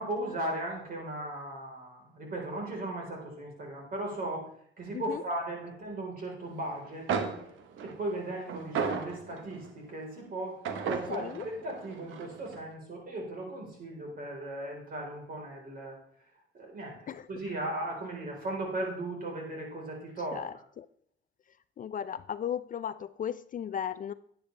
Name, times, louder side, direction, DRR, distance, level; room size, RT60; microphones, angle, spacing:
voice 1, 0.0-4.5 4.8-7.3 7.8-16.0 16.5-20.4, right 1 dB, 45° right, -1 dB, 4.0 m, -37 dB
sound 1, 6.8-6.9 7.1-9.7 10.6-12.6, right 6 dB, 80° right, 1.1 m, -35 dB
voice 2, 11.1-11.5 17.1-17.3 20.3-20.9 21.8-24.1, left 9 dB, 45° left, 15 dB, 0.4 m, -36 dB
10.0 x 9.7 x 3.3 m, 0.64 s
cardioid pair, 90°, 20 cm